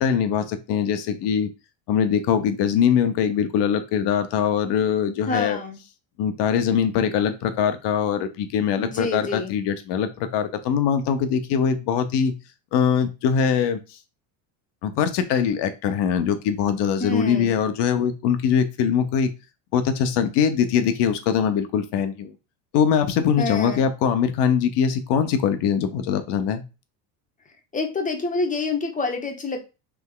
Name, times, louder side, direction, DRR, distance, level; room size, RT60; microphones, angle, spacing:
voice 1, 0.0-1.5 1.9-5.6 6.2-12.3 12.7-13.8 14.8-19.3 19.7-22.3 22.7-26.6, left 7 dB, 60° left, 9 dB, 0.9 m, -22 dB
voice 2, 5.3-5.8 8.8-9.6 17.0-17.6 23.4-23.9 27.7-29.7, left 3 dB, 15° left, 4 dB, 0.9 m, -27 dB
3.5 x 3.4 x 3.8 m, 0.28 s
supercardioid pair, 120°, 48 cm